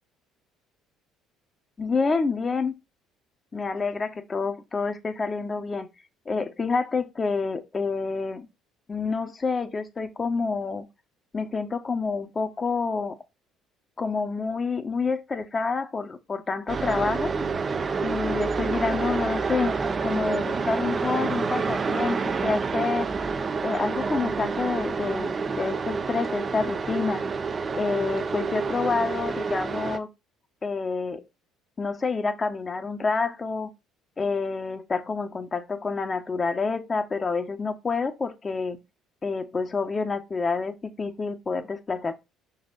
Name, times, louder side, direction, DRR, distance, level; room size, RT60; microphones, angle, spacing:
voice 1, 1.8-2.7 3.5-5.9 6.2-8.5 8.9-10.9 11.3-13.2 14.0-17.3 18.0-23.2 23.6-27.2 27.7-30.1 30.6-31.2 31.8-33.7 34.2-38.8 39.2-42.1, left 4 dB, 30° left, 1.2 m, -28 dB
sound 1, 16.7-30.0, right 4 dB, 35° right, 0.8 m, -28 dB
6.1 x 4.2 x 4.1 m
hypercardioid pair, 55°, 0 cm